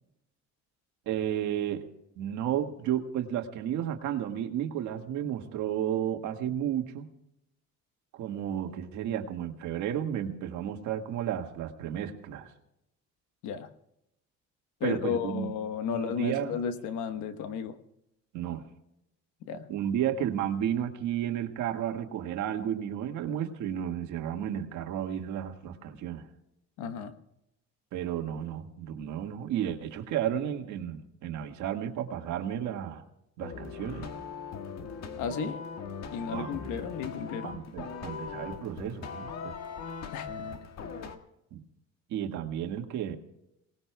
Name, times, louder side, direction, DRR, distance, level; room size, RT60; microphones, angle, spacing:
voice 1, 1.1-1.9 2.2-7.1 8.1-12.5 14.8-15.5 15.9-16.6 18.3-18.7 19.7-26.3 27.9-33.0 33.4-34.1 36.3-36.6 37.4-39.6 41.5-41.6 42.1-43.2, right 10 dB, 80° right, 5 dB, 1.8 m, -32 dB
voice 2, 14.8-17.8 19.4-19.7 26.8-27.1 35.2-35.6 36.1-37.6 40.1-40.6, left 6 dB, 85° left, 9 dB, 1.3 m, -33 dB
sound 1, 33.4-41.2, left 5 dB, 65° left, 1.7 m, -40 dB
27.0 x 19.0 x 2.3 m, 0.83 s
cardioid pair, 115°, 29 cm